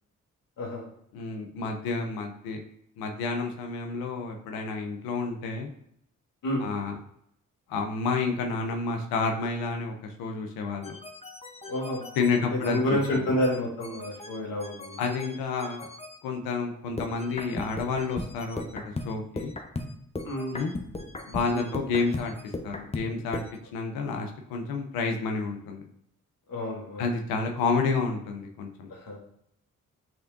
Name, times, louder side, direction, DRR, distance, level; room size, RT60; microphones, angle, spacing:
voice 1, 1.1-2.6 3.0-5.7 6.6-7.0 7.7-11.0 12.2-13.0 15.0-15.9 16.2-19.5 20.5-20.7 21.3-22.3 22.6-23.4 23.7-25.8 27.0-28.9, left 4 dB, 85° left, 3 dB, 0.6 m, -30 dB
sound 1, 10.8-16.2 17.0-23.6, left 2 dB, 20° left, 0.7 m, -38 dB
voice 2, 11.6-12.0 12.3-15.0 20.2-20.6 21.5-21.7 26.5-27.1 28.9-29.2, left 1 dB, 70° left, -1 dB, 1.6 m, -29 dB
6.2 x 3.4 x 2.6 m, 0.73 s
supercardioid pair, 40°, 35 cm